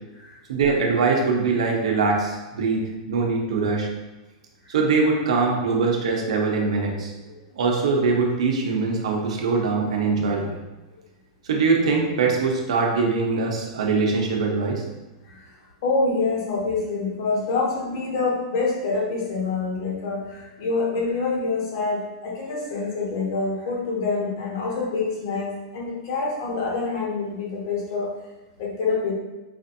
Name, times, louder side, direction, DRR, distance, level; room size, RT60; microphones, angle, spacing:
voice 1, 0.5-3.9 4.7-7.1 7.6-10.6 11.4-14.8, right 4 dB, 80° right, 0 dB, 0.8 m, -22 dB
voice 2, 15.8-28.1 28.6-29.1, left 3 dB, 50° left, -3 dB, 1.1 m, -26 dB
5.0 x 2.6 x 2.6 m, 1.1 s
supercardioid pair, 170°, 3 cm